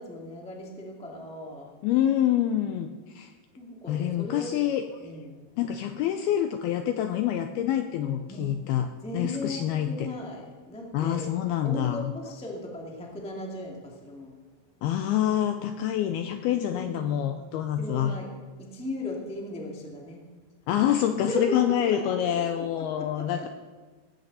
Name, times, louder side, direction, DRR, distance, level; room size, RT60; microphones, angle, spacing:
voice 1, 0.0-1.7 3.5-4.6 5.0-5.5 8.3-8.6 9.0-11.3 11.6-14.4 16.6-17.1 17.8-18.3 18.6-20.2 21.3-22.5 22.7-23.5, left 1 dB, 10° left, -1 dB, 0.3 m, -37 dB
voice 2, 1.8-3.3 3.9-4.8 5.6-8.9 9.1-10.1 10.9-12.1 14.8-18.2 20.7-23.5, left 11 dB, 85° left, 7 dB, 2.2 m, -26 dB
17.5 x 15.0 x 4.1 m, 1.4 s
omnidirectional pair, 5.1 m